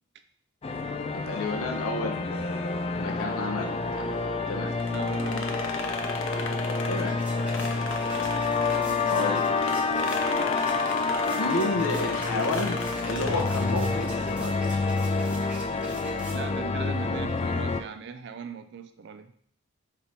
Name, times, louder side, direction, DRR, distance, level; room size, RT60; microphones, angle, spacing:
sound 1, 0.6-17.8, left 3 dB, 30° left, 0.3 m, -28 dB
voice 1, 1.1-4.0 4.5-4.7 6.9-7.2 9.1-9.5 11.4-12.8 13.1-14.7, left 2 dB, 90° left, 2 dB, 0.9 m, -31 dB
sound 2, 4.8-9.3 9.6-13.7, left 4 dB, 60° left, 0.7 m, -38 dB
voice 2, 4.9-5.7 8.9-9.4 16.0-19.3, right 6 dB, 55° right, 9 dB, 0.4 m, -40 dB
sound 3, 6.6-16.7, right 1 dB, 5° right, 0.9 m, -44 dB
5.4 x 4.1 x 4.4 m, 0.62 s
head